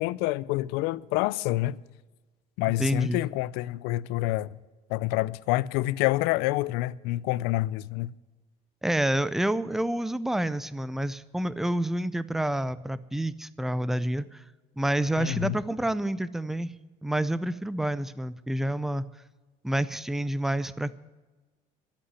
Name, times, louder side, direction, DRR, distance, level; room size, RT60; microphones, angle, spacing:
voice 1, 0.0-1.8 2.6-4.5 4.9-8.1 15.2-15.6, left 17 dB, 85° left, 0.5 m, -27 dB
voice 2, 2.8-3.2 8.8-14.4 14.8-16.7 17.0-19.0 19.6-20.9, right 1 dB, ahead, 0.4 m, -28 dB
13.0 x 8.4 x 9.6 m
cardioid pair, 150°, 16 cm